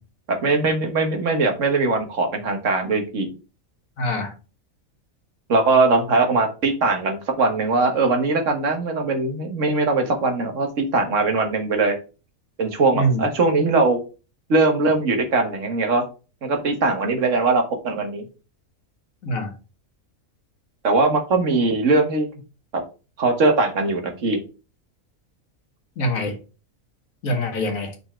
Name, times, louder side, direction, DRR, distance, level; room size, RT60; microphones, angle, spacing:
voice 1, 0.3-3.3 5.5-12.0 12.6-14.0 14.5-16.0 16.4-18.2 20.8-22.3 22.7-22.8 23.2-24.4, right 3 dB, 65° right, 1.6 m, -20 dB
voice 2, 4.0-4.3 12.9-13.2 19.2-19.5 26.0-26.4 27.2-27.9, equal, 75° left, 1.7 m, -24 dB
5.7 x 4.1 x 4.3 m
omnidirectional pair, 1.4 m